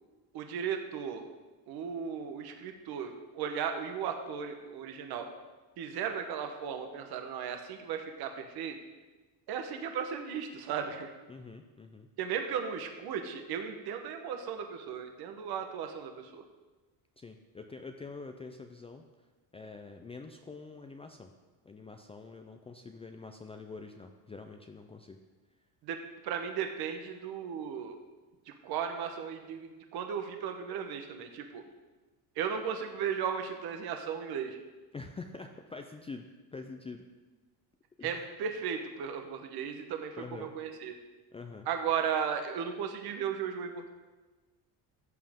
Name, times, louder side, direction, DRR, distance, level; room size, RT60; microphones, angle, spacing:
voice 1, 0.3-1.2 1.7-5.3 5.8-8.7 9.5-11.1 12.2-16.4 25.8-28.0 28.5-31.6 32.4-34.6 38.0-40.9 41.7-43.9, right 7 dB, 60° right, 5 dB, 1.1 m, -36 dB
voice 2, 11.3-12.1 17.2-19.0 19.5-21.3 21.6-25.2 34.9-37.0 38.0-38.3 40.2-40.5 41.3-41.7, left 4 dB, 15° left, 5 dB, 0.4 m, -46 dB
14.0 x 7.5 x 3.6 m, 1.3 s
cardioid pair, 130°, 41 cm